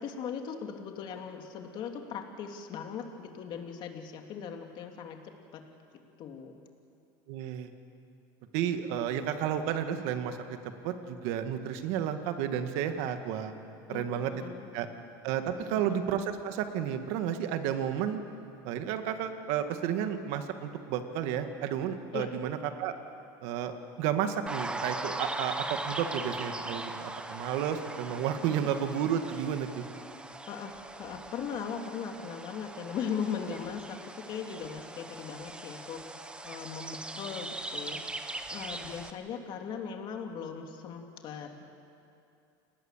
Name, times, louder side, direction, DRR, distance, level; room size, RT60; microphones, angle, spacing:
voice 1, 0.0-5.2 5.5-5.6 6.2-6.6 13.9-14.7 15.7-15.9 22.1-22.3 28.5-28.7 30.5-30.7 31.0-38.0 38.5-41.6, left 7 dB, 45° left, 4 dB, 2.7 m, -39 dB
voice 2, 7.3-7.7 8.5-10.6 10.8-13.5 13.9-14.3 14.7-14.9 15.2-18.2 18.6-22.9 23.4-23.7 24.0-29.8, right 9 dB, 70° right, 7 dB, 2.0 m, -32 dB
sound 1, 24.5-39.1, right 2 dB, 10° right, 1.2 m, -40 dB
28.5 x 19.5 x 7.5 m, 2.6 s
supercardioid pair, 130°, 11 cm